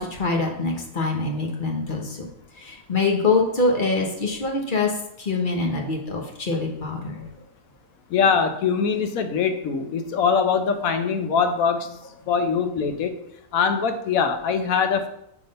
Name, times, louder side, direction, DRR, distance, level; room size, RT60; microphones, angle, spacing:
voice 1, 0.0-2.3 2.6-7.3, left 3 dB, 40° left, 1 dB, 1.1 m, -24 dB
voice 2, 8.1-12.0 12.3-13.2 13.5-15.1, left 6 dB, 75° left, 8 dB, 1.1 m, -22 dB
5.9 x 3.6 x 5.3 m, 0.79 s
omnidirectional pair, 1.5 m